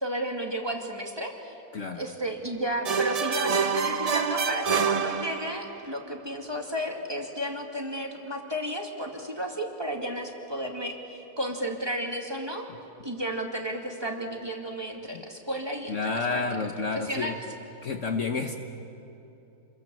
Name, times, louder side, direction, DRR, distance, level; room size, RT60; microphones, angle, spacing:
voice 1, 0.0-1.6 1.9-12.7 13.0-16.5 16.8-17.4, equal, 15° right, 0 dB, 2.4 m, -33 dB
voice 2, 1.7-2.0 15.1-15.2 15.9-17.3 17.8-18.5, left 4 dB, 50° left, 4 dB, 1.4 m, -30 dB
sound 1, 2.8-5.8, right 6 dB, 65° right, 0.3 m, -27 dB
28.0 x 21.5 x 7.8 m, 2.9 s
omnidirectional pair, 1.7 m